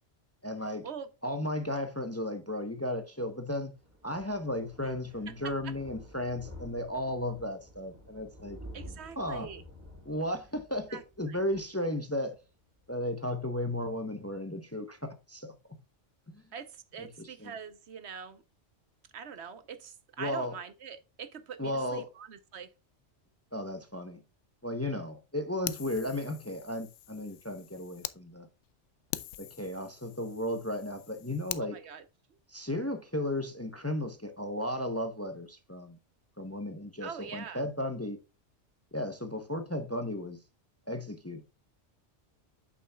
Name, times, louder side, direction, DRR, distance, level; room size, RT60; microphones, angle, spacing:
voice 1, 0.4-0.9 1.2-3.7 4.0-8.6 9.2-9.5 10.1-12.3 12.9-15.5 16.3-16.4 17.0-17.5 20.2-20.5 21.6-22.0 23.5-24.2 24.6-28.5 29.4-31.8 32.5-36.0 36.4-38.2 38.9-40.4 40.9-41.4, left 1 dB, 15° left, 0.8 m, -34 dB
Thunder, 3.1-12.5 12.8-13.1 13.4-13.5 13.6-13.7, equal, 15° right, 2.6 m, -51 dB
voice 2, 5.4-5.7 8.7-9.6 10.9-11.4 16.5-18.4 19.1-22.7 31.6-32.0 37.0-37.6, right 7 dB, 65° right, 1.0 m, -43 dB
Fire, 25.7-28.2 28.6-28.7 29.1-31.7, left 12 dB, 90° left, 0.9 m, -43 dB
8.5 x 6.9 x 2.3 m
omnidirectional pair, 1.2 m